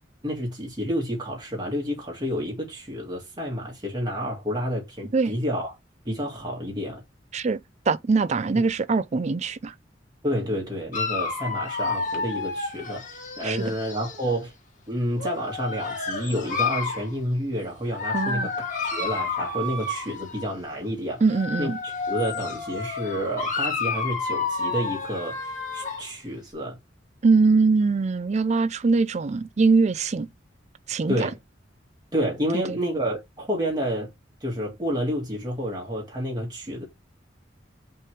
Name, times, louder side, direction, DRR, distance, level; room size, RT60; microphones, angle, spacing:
voice 1, 0.2-5.7 6.1-7.0 8.5-8.6 10.2-14.5 14.9-21.2 21.6-26.8 31.1-31.4 32.1-34.1 34.4-36.8, equal, 20° right, 2.1 m, -29 dB
voice 2, 7.9-9.7 13.4-13.7 18.1-18.5 21.2-21.8 27.2-30.3 30.9-31.3 32.7-32.8, right 4 dB, 40° right, 0.4 m, -22 dB
Dog, 10.9-14.3 15.1-17.1 17.9-20.5 21.2-26.1, left 4 dB, 45° left, 1.6 m, -30 dB
5.6 x 3.7 x 4.7 m
head